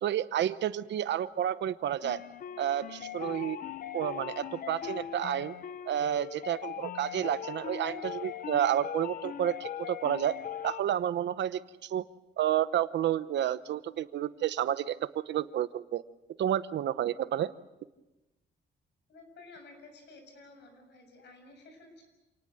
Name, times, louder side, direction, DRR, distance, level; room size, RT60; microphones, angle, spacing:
voice 1, 0.0-2.2 2.6-3.6 3.9-5.5 5.9-10.4 10.6-12.0 12.4-16.0 16.4-17.5, right 11 dB, 70° right, 14 dB, 0.9 m, -30 dB
sound 1, 2.0-10.8, left 9 dB, 45° left, 0.8 m, -40 dB
voice 2, 19.1-22.0, left 3 dB, 65° left, 5 dB, 6.9 m, -53 dB
28.0 x 19.0 x 7.7 m, 1.0 s
wide cardioid pair, 180°, 19 cm